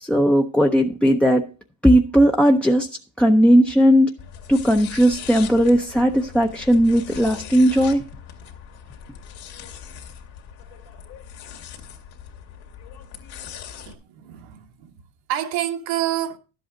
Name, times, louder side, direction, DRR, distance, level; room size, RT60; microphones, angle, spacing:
voice 1, 0.0-1.4 1.8-2.9 3.2-4.1 4.5-8.0, equal, 5° left, 0.5 m, -17 dB
sound 1, 4.2-13.9, left 8 dB, 80° left, 2.3 m, -40 dB
voice 2, 13.9-15.0 15.3-16.4, right 12 dB, 80° right, 1.4 m, -28 dB
12.0 x 8.0 x 3.7 m
cardioid pair, 130°, 46 cm